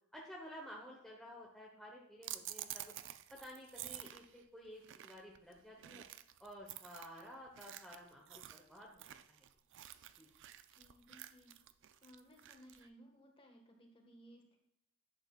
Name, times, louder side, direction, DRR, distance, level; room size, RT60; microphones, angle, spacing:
voice 1, 0.1-2.9 3.3-6.0 6.4-9.5 10.2-10.3, equal, ahead, -3 dB, 1.0 m, -53 dB
sound 1, 2.2-12.9, right 12 dB, 55° right, 0.4 m, -50 dB
voice 2, 10.7-11.6 12.0-14.6, equal, 25° left, 2 dB, 1.5 m, -61 dB
10.5 x 8.0 x 2.4 m, 0.79 s
head